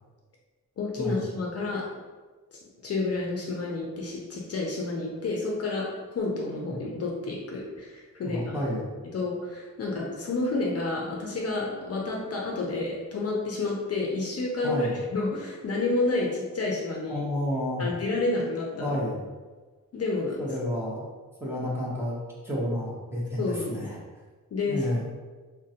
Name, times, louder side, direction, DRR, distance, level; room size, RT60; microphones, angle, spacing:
voice 1, 0.8-1.8 2.8-8.5 9.1-17.2 17.8-19.0 19.9-20.4 23.4-23.8 24.5-25.1, left 3 dB, 45° left, -2 dB, 0.5 m, -30 dB
voice 2, 8.2-8.8 14.6-14.9 17.1-17.9 18.8-19.2 20.4-21.1 21.4-22.2 22.4-24.0 24.7-25.1, left 1 dB, 5° right, -6 dB, 0.7 m, -30 dB
3.7 x 2.1 x 2.7 m, 1.3 s
wide cardioid pair, 160°, 33 cm